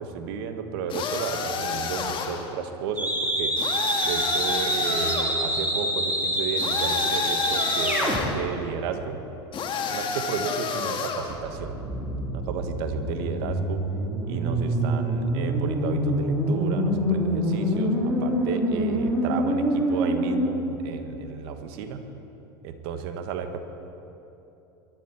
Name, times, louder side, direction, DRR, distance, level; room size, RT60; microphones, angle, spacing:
voice 1, 0.0-3.5 4.0-9.2 9.9-11.7 12.3-13.8 14.3-22.0 22.6-23.6, right 6 dB, 65° right, 7 dB, 1.6 m, -33 dB
sound 1, 0.9-2.5 3.6-5.4 6.6-8.4 9.5-11.4, left 5 dB, 35° left, 1.8 m, -30 dB
sound 2, 3.0-8.2 11.3-20.4, equal, 10° right, 3.8 m, -26 dB
23.0 x 13.0 x 4.5 m, 2.9 s
hypercardioid pair, 90°, 14 cm